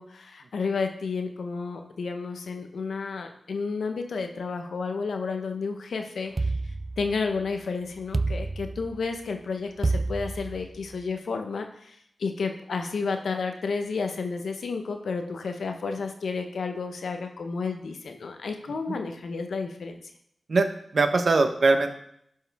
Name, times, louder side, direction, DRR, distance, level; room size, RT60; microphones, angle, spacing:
voice 1, 0.0-6.5 7.0-20.0, left 4 dB, 85° left, 5 dB, 0.7 m, -31 dB
sound 1, 6.4-7.5 8.1-9.2 9.8-10.9, right 3 dB, 40° right, 0.3 m, -29 dB
voice 2, 20.5-22.0, right 3 dB, 65° right, 7 dB, 0.8 m, -22 dB
10.0 x 4.7 x 3.4 m, 0.71 s
cardioid pair, 60°, 0 cm